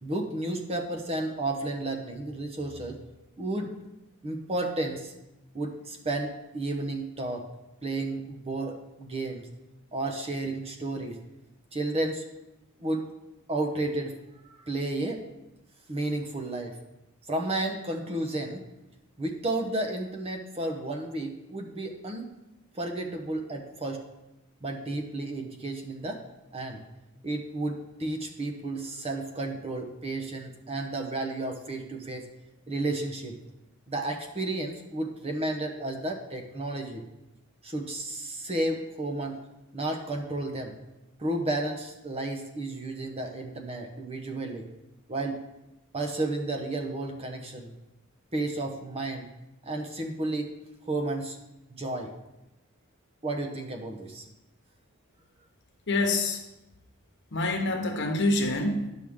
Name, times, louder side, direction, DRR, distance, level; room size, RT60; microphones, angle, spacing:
voice 1, 0.0-3.0 3.4-3.7 4.2-5.1 5.5-7.5 7.8-9.5 9.9-11.2 11.7-12.2 12.8-13.0 13.5-15.2 15.9-16.8 17.3-18.6 19.2-22.3 22.7-24.0 24.6-26.2 26.5-26.8 27.2-32.2 32.7-33.4 33.9-37.0 37.6-39.5 39.7-40.7 41.2-44.7 45.1-45.4 45.9-47.7 48.3-49.3 49.6-50.6 50.8-51.4 51.7-52.1 53.2-54.2, right 2 dB, 30° right, 3 dB, 0.8 m, -32 dB
voice 2, 55.9-56.4 57.3-58.9, left 2 dB, 55° left, 3 dB, 1.1 m, -26 dB
9.9 x 6.2 x 3.6 m, 0.95 s
head